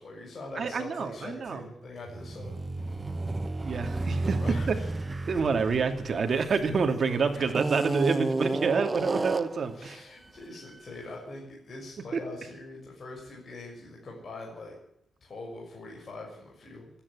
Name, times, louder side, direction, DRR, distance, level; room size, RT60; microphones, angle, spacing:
voice 1, 0.0-2.6 4.4-4.9 7.0-8.0 9.7-14.7 15.2-16.9, left 2 dB, 40° left, -2 dB, 6.3 m, -43 dB
voice 2, 0.6-1.6 3.6-4.4 4.7-4.8 5.3-10.0, right 5 dB, 45° right, 6 dB, 2.6 m, -27 dB
sound 1, 2.0-6.9 7.5-9.7, right 2 dB, 20° right, 0.8 m, -31 dB
26.5 x 10.0 x 9.8 m, 0.78 s
wide cardioid pair, 150°, 0 cm